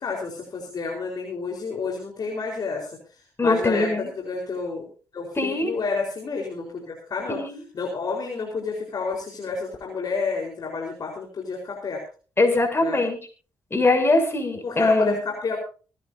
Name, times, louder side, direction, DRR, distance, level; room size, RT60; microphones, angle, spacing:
voice 1, 0.0-2.9 3.4-4.9 5.1-7.4 7.7-12.0 12.8-13.0 14.6-15.6, left 4 dB, 55° left, 0 dB, 4.4 m, -30 dB
voice 2, 3.4-4.1 5.4-5.7 7.3-7.6 12.4-13.2 13.7-15.1, left 2 dB, 30° left, 4 dB, 7.1 m, -21 dB
26.0 x 10.5 x 2.8 m, 0.37 s
hypercardioid pair, 45°, 8 cm